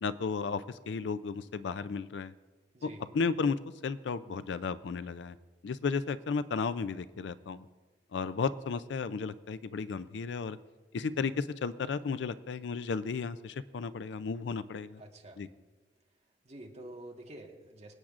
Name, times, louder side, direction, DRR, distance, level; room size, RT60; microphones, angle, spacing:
voice 1, 0.0-2.3 2.8-2.9 3.1-3.6 3.8-5.4 5.6-7.6 8.1-10.6 10.9-15.0 15.4-15.5, left 5 dB, 75° left, 14 dB, 0.4 m, -34 dB
voice 2, 2.7-3.1 14.9-15.4 16.4-17.9, right 1 dB, 40° right, 1 dB, 1.5 m, -48 dB
25.5 x 8.7 x 2.5 m, 1.2 s
head